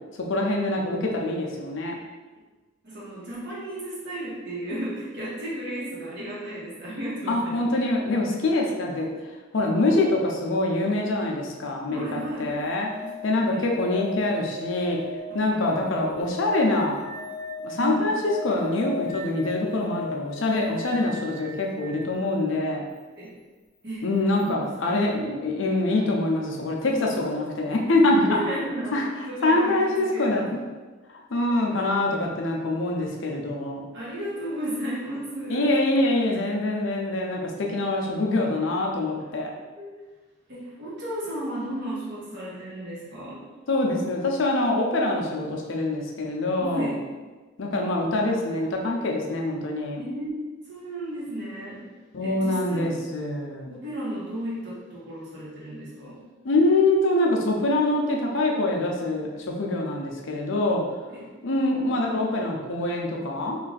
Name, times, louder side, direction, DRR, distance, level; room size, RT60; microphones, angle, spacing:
voice 1, 0.3-1.9 7.3-9.1 9.5-12.9 13.2-15.0 15.3-17.1 17.6-18.1 18.4-22.8 24.0-28.5 28.9-29.1 29.4-30.6 31.3-33.8 35.5-39.5 43.7-46.9 47.6-50.0 52.1-53.8 56.4-60.8 61.4-63.6, left 2 dB, 60° left, 0 dB, 0.5 m, -24 dB
voice 2, 2.8-7.6 11.9-12.5 13.0-13.6 15.5-15.6 17.8-18.0 23.1-23.3 23.8-24.0 24.4-24.5 24.8-24.9 26.9-27.0 28.1-29.0 29.3-30.6 31.7-31.8 33.0-33.1 33.9-35.7 39.8-39.9 40.5-43.4 46.6-47.0 50.0-51.9 52.2-52.9 53.7-56.2 61.1-61.3, right 1 dB, 55° right, -7 dB, 1.2 m, -34 dB
sound 1, 12.2-22.1 24.4-24.5, left 2 dB, 90° left, 0.8 m, -37 dB
3.2 x 2.5 x 3.9 m, 1.3 s
head